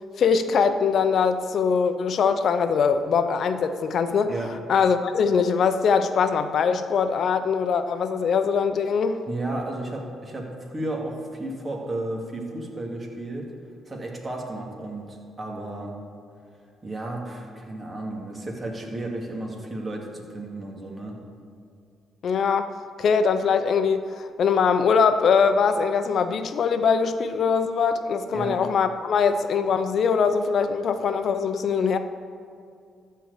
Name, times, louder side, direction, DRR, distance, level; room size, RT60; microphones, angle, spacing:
voice 1, 0.2-4.3 4.7-9.2 22.2-32.0, left 6 dB, 60° left, 9 dB, 0.8 m, -22 dB
voice 2, 9.3-13.5 13.9-16.0 16.8-21.2 28.3-28.6, right 1 dB, 30° right, -1 dB, 2.6 m, -33 dB
13.0 x 4.6 x 8.3 m, 2.4 s
supercardioid pair, 65°, 0 cm